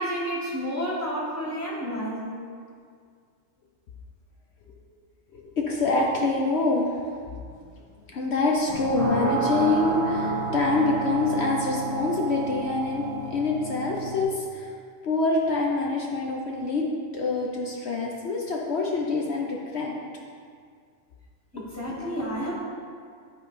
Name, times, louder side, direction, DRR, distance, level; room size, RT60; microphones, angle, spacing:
voice 1, 0.0-2.4 21.5-22.6, equal, 15° right, -5 dB, 1.6 m, -30 dB
voice 2, 5.3-7.0 8.1-13.0 13.3-14.7 15.0-16.9 17.1-19.9, left 3 dB, 60° left, -1 dB, 1.0 m, -26 dB
sound 1, 8.7-14.2, right 2 dB, 30° right, 1.5 m, -30 dB
11.0 x 4.0 x 5.0 m, 2.1 s
omnidirectional pair, 1.3 m